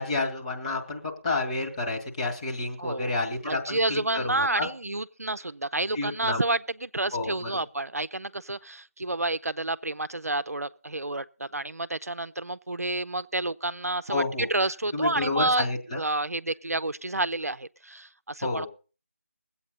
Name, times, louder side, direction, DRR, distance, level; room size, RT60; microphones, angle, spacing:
voice 1, 0.0-4.7 5.9-6.4 7.1-7.6 14.1-14.5 14.9-16.0 18.4-18.7, left 3 dB, 25° left, 2.0 m, -30 dB
voice 2, 2.8-3.2 3.4-15.7 15.9-18.7, right 2 dB, 80° right, 0.6 m, -29 dB
21.5 x 8.4 x 4.0 m
figure-of-eight pair, 160°, 8 cm